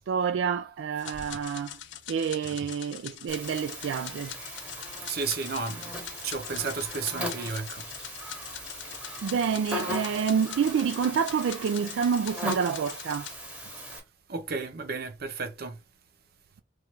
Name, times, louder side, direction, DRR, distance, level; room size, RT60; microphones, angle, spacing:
voice 1, 0.1-1.8 2.1-4.3 9.2-13.3 13.9-14.0, right 6 dB, 80° right, 0.3 m, -28 dB
sound 1, 1.0-13.4, left 11 dB, 65° left, 0.4 m, -43 dB
Buzz, 3.3-14.0, equal, 5° right, 0.9 m, -38 dB
voice 2, 5.1-7.9 14.3-15.8, right 4 dB, 55° right, 0.7 m, -33 dB
3.2 x 2.4 x 4.4 m
head